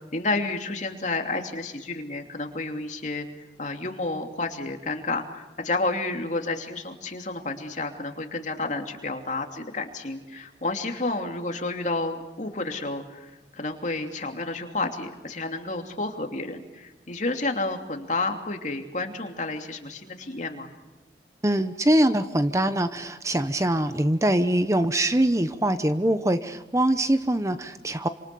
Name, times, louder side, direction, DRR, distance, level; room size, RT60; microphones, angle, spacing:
voice 1, 0.1-3.3 3.6-20.7, left 2 dB, 40° left, 4 dB, 3.0 m, -30 dB
voice 2, 21.4-28.1, right 1 dB, 15° right, 10 dB, 0.8 m, -23 dB
28.0 x 27.0 x 7.0 m, 1.1 s
head